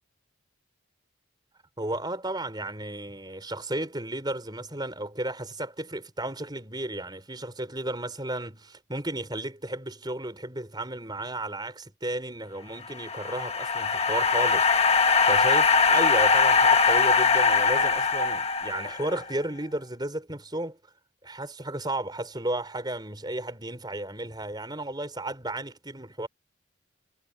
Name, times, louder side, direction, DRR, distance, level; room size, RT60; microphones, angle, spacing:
voice 1, 1.8-14.7 15.2-20.8 21.2-26.3, right 1 dB, 20° right, 4.6 m, -33 dB
sound 1, 12.9-19.2, left 5 dB, 30° left, 1.5 m, -21 dB
head